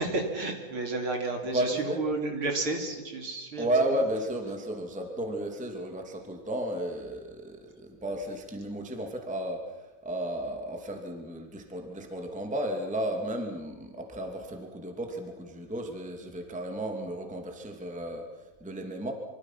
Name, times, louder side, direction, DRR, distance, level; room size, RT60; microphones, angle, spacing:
voice 1, 0.0-3.7, right 2 dB, 35° right, 3 dB, 2.9 m, -31 dB
voice 2, 1.5-2.0 3.6-19.1, right 1 dB, 10° right, 3 dB, 0.4 m, -33 dB
27.0 x 25.0 x 5.9 m, 1.1 s
omnidirectional pair, 5.6 m